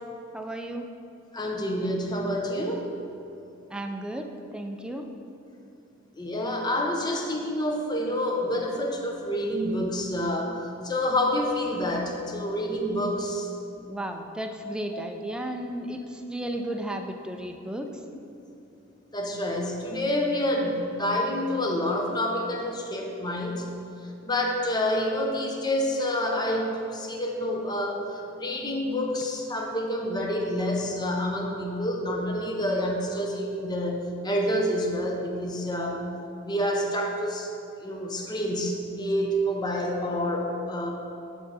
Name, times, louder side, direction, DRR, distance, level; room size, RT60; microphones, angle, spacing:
voice 1, 0.3-0.9 3.7-5.1 13.8-18.0, right 1 dB, 5° right, 4 dB, 0.4 m, -34 dB
voice 2, 1.3-2.9 6.2-10.6 10.8-13.5 14.9-15.0 19.1-23.6 24.2-34.0 34.2-36.0 36.4-37.5 37.8-40.9, left 1 dB, 20° left, 1 dB, 0.7 m, -28 dB
10.5 x 3.8 x 4.1 m, 2.7 s
head